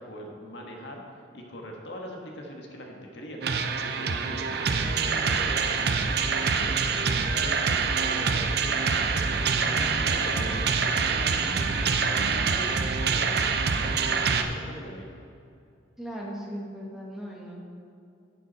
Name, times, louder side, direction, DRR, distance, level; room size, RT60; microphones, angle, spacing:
voice 1, 0.0-3.5 3.8-15.2, equal, 65° left, 0 dB, 1.5 m, -41 dB
sound 1, 3.4-14.4, right 5 dB, 55° right, 0.6 m, -25 dB
voice 2, 16.0-17.6, equal, ahead, -4 dB, 1.5 m, -37 dB
11.0 x 8.5 x 4.1 m, 2.5 s
head